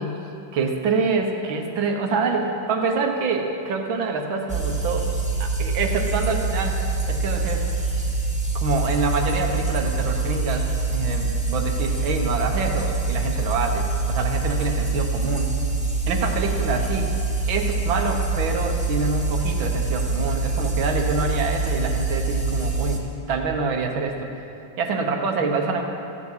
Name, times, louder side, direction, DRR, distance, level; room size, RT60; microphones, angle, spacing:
voice 1, 0.5-5.1 5.4-6.8 7.1-7.7 8.6-15.5 16.1-17.1 17.5-24.3 24.8-25.8, right 4 dB, 80° right, 3 dB, 1.9 m, -26 dB
sound 1, 4.5-23.0, right 3 dB, 5° right, 1.5 m, -25 dB
14.0 x 7.1 x 9.0 m, 2.8 s
omnidirectional pair, 2.2 m